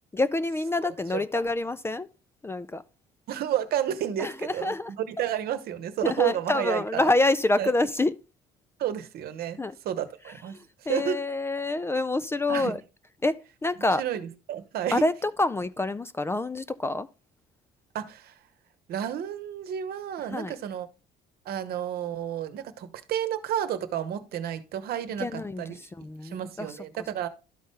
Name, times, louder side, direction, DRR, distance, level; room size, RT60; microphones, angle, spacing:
voice 1, 0.1-2.1 2.4-2.8 4.2-4.9 6.0-8.1 9.6-9.8 10.5-12.8 13.2-13.4 13.6-14.0 14.9-17.1 20.3-20.5 25.2-26.7, left 2 dB, 15° left, 0.4 m, -27 dB
voice 2, 3.3-7.1 7.6-7.7 8.8-9.6 9.8-10.6 10.9-11.2 12.5-12.8 14.0-15.0 17.9-18.4 18.9-20.9 21.4-25.8 26.2-27.3, right 10 dB, 65° right, 1.0 m, -31 dB
12.0 x 4.1 x 3.6 m
cardioid pair, 110°, 17 cm